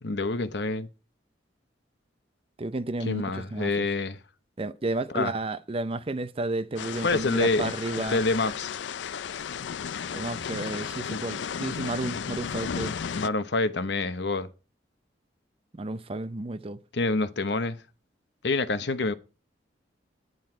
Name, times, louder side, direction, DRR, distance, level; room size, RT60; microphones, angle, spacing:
voice 1, 0.0-0.9 3.1-4.2 5.1-5.3 7.0-8.7 11.1-11.2 13.1-14.5 16.9-17.8 18.4-19.1, left 3 dB, 70° left, 0.9 m, -27 dB
voice 2, 2.6-3.9 4.6-8.2 10.1-13.0 15.7-16.8, right 2 dB, 30° right, 0.6 m, -32 dB
sound 1, 6.8-13.3, left 7 dB, 85° left, 0.4 m, -34 dB
9.7 x 9.2 x 4.5 m
head